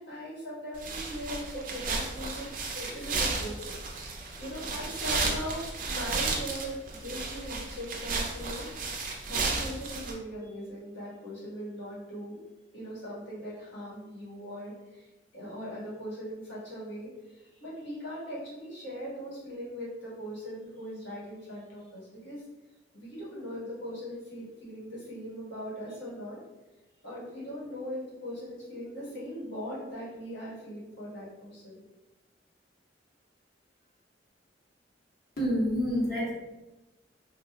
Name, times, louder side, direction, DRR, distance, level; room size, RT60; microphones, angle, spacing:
voice 1, 0.0-12.4 12.7-22.4 22.9-26.4 27.0-31.8, equal, 80° left, -7 dB, 1.5 m, -40 dB
sound 1, 0.7-10.1, right 3 dB, 45° right, 0.5 m, -33 dB
voice 2, 35.4-36.3, equal, 55° left, -6 dB, 1.2 m, -27 dB
3.3 x 2.7 x 2.3 m, 1.0 s
head